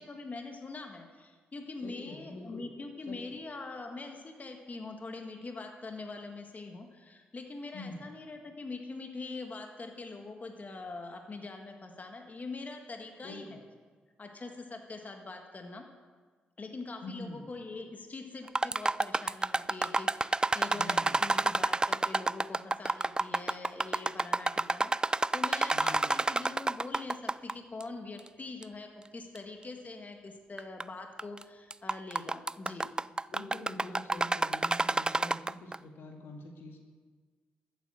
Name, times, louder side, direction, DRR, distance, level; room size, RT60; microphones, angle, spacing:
voice 1, 0.0-13.6 14.2-15.9 16.6-32.9, left 3 dB, 40° left, 4 dB, 1.7 m, -43 dB
voice 2, 1.8-2.6 3.0-3.2 7.7-8.0 13.2-13.6 17.0-17.5 20.7-21.2 25.7-26.1 33.3-36.8, left 2 dB, 70° left, 2 dB, 2.0 m, -45 dB
sound 1, 18.5-27.5 27.8-27.9 28.6-28.7 29.4-29.5 30.6-30.8 31.2-31.4 31.7-35.8, right 2 dB, 20° right, 0.3 m, -29 dB
13.5 x 9.1 x 7.6 m, 1.5 s
hypercardioid pair, 40°, 4 cm